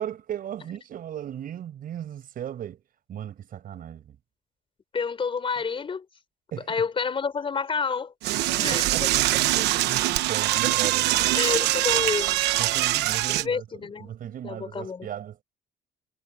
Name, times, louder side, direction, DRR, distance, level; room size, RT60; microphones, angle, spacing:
voice 1, 0.0-2.8 3.1-4.2 6.5-6.8 8.6-11.4 12.6-13.6 14.0-15.4, right 10 dB, 55° right, 6.9 m, -36 dB
voice 2, 4.9-6.0 6.7-8.1 8.5-8.9 11.3-12.4 13.3-14.1 14.4-15.1, left 5 dB, 30° left, 4.5 m, -29 dB
Door / Toilet flush, 8.2-13.4, right 16 dB, 85° right, 1.1 m, -23 dB
cardioid pair, 110°, 17 cm